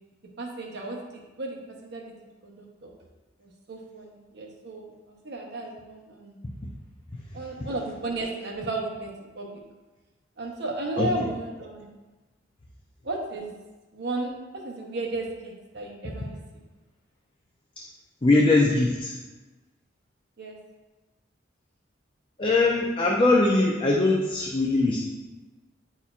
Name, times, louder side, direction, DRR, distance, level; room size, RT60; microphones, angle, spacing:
voice 1, 0.4-2.1 2.4-2.9 3.4-6.4 7.3-9.1 9.4-9.6 10.4-11.9 13.0-13.5 13.9-14.4 14.6-16.4 20.4-20.6, right 2 dB, 60° right, -1 dB, 1.0 m, -34 dB
voice 2, 18.2-19.1 22.4-25.0, left 2 dB, 25° left, -2 dB, 0.6 m, -21 dB
9.8 x 4.2 x 2.5 m, 1.2 s
head